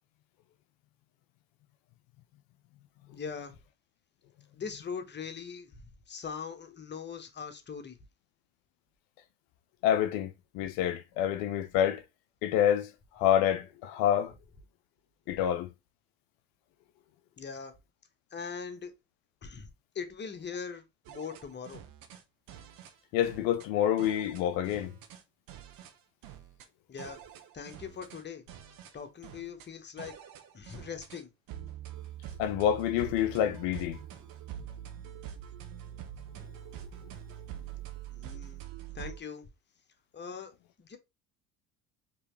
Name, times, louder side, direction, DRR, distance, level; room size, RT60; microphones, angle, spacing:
voice 1, 3.1-3.5 4.5-8.0 15.3-15.4 17.4-17.7 18.3-18.9 19.4-19.7 19.9-21.8 26.9-27.2 27.5-28.4 28.9-30.2 30.5-31.3 38.1-38.6 38.9-39.4 40.1-40.5 40.8-41.0, left 6 dB, 25° left, 1.1 m, -41 dB
voice 2, 9.8-10.3 10.5-12.0 12.4-12.9 13.2-14.3 15.3-15.7 23.1-24.9 32.4-34.0, left 10 dB, 55° left, 0.5 m, -27 dB
sound 1, 21.1-22.2 22.5-22.9 23.2-23.7 24.0-25.2 25.5-25.9 26.2-26.7 27.0-28.2 28.5-28.9 29.2-29.7 30.0-31.2 31.5-39.2, right 10 dB, 50° right, 1.0 m, -45 dB
4.6 x 3.1 x 3.2 m
figure-of-eight pair, 65°, 43 cm